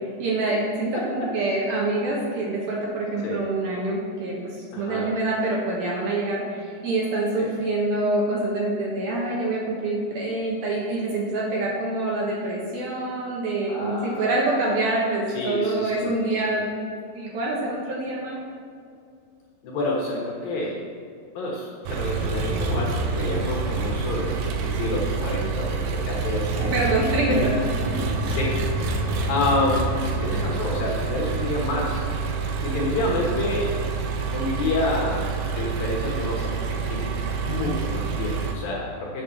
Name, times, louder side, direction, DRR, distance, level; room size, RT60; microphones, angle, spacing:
voice 1, 0.2-16.6 17.1-18.4 26.5-27.5 27.9-28.0, right 2 dB, 65° right, -4 dB, 2.7 m, -26 dB
voice 2, 0.9-1.3 3.2-3.4 4.7-5.1 7.4-7.5 13.7-14.2 15.3-16.1 19.6-20.8 21.4-26.9 27.3-27.5 28.2-28.6 29.3-32.0 32.6-33.7 34.3-35.3 35.6-37.1 37.4-39.2, left 2 dB, 65° left, -3 dB, 2.5 m, -28 dB
Engine, 21.8-38.5, right 4 dB, 85° right, 2.1 m, -27 dB
8.4 x 7.4 x 6.3 m, 2.4 s
omnidirectional pair, 5.4 m